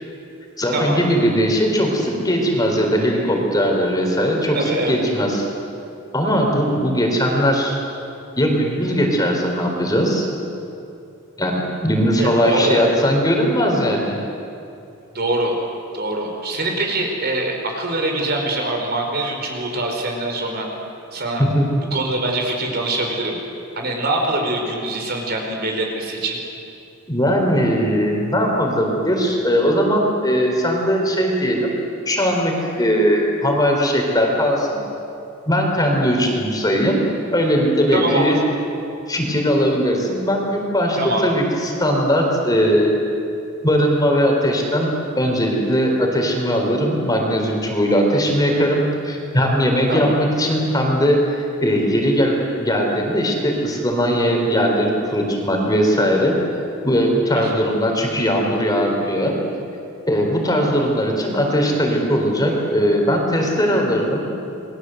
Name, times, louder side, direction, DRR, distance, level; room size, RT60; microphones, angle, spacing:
voice 1, 0.6-5.4 6.1-7.8 8.4-10.3 11.4-14.2 21.4-21.7 27.1-31.7 32.1-34.8 35.5-37.0 37.3-38.4 39.1-42.9 43.6-51.2 51.6-56.4 56.8-59.3 60.1-64.3, equal, 20° left, 0 dB, 4.0 m, -19 dB
voice 2, 4.5-5.0 12.2-12.8 15.1-15.6 15.9-20.7 21.1-21.4 21.9-23.4 23.8-26.4 37.9-38.4 41.0-41.2 49.9-50.1 57.3-57.6, right 2 dB, 45° right, 2 dB, 4.7 m, -23 dB
29.0 x 21.5 x 8.0 m, 2.7 s
head